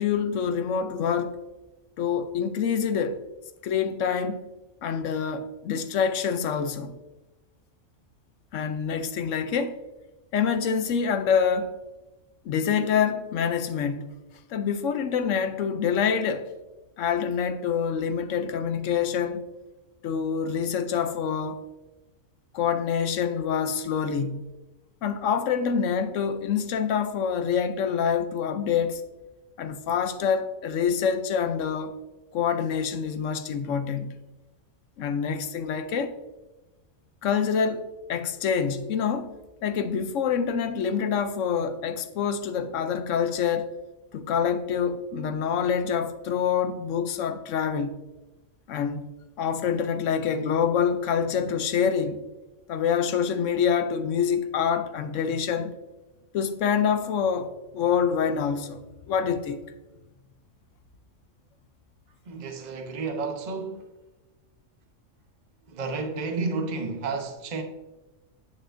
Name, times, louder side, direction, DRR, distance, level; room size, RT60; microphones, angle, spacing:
voice 1, 0.0-1.4 2.0-3.2 3.6-4.5 4.8-6.9 8.5-9.8 10.3-11.8 12.4-14.1 14.5-16.5 17.0-19.5 20.0-21.6 22.5-24.4 25.0-29.0 29.6-32.0 32.3-34.1 35.0-36.1 37.2-43.7 44.1-48.0 48.7-49.1 49.4-52.2 52.7-55.7 56.3-58.8 59.1-59.6, left 7 dB, 80° left, 1.0 m, -26 dB
voice 2, 62.2-63.9 65.7-67.6, right 4 dB, 40° right, 0.9 m, -31 dB
8.8 x 7.1 x 2.6 m
omnidirectional pair, 1.3 m